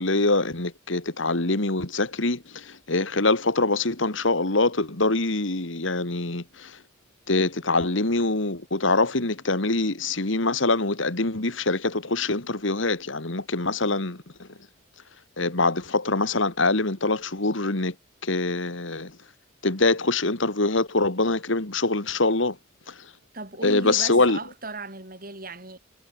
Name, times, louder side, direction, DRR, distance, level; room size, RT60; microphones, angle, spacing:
voice 1, 0.0-6.8 7.3-14.5 15.4-17.9 18.2-19.2 19.6-22.6 22.9-23.0 23.6-24.4, left 2 dB, 70° left, 2.2 m, -24 dB
voice 2, 23.3-25.8, right 2 dB, 45° right, 7.9 m, -36 dB
head